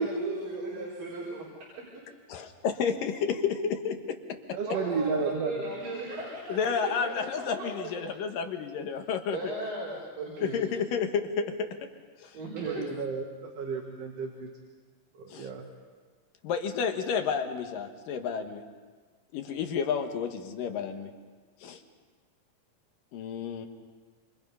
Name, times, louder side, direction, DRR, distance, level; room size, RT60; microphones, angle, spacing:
voice 1, 0.0-1.4 4.6-7.9 9.3-10.6 12.3-12.9, right 2 dB, 80° right, -5 dB, 6.0 m, -36 dB
voice 2, 2.3-4.2 6.5-9.4 10.4-11.7 12.2-12.4 12.8-12.9 15.3-15.5 16.4-18.6 19.3-21.1 21.6-21.8 23.1-23.7, left 6 dB, 80° left, 6 dB, 3.1 m, -31 dB
voice 3, 4.5-5.5 12.5-14.5 15.2-15.7, right 5 dB, 55° right, 2 dB, 2.6 m, -32 dB
28.0 x 27.0 x 5.6 m, 1.4 s
omnidirectional pair, 3.8 m